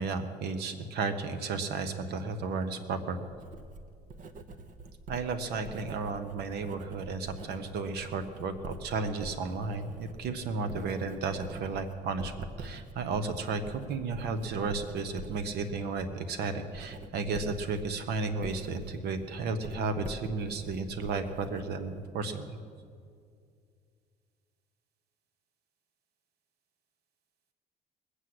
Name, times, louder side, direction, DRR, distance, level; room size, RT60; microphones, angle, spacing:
voice 1, 0.0-3.2 5.1-22.6, right 4 dB, 75° right, 10 dB, 1.3 m, -33 dB
Writing, 3.3-22.1, right 2 dB, 50° right, 1.0 m, -47 dB
20.5 x 8.3 x 7.9 m, 2.2 s
cardioid pair, 110°, 17 cm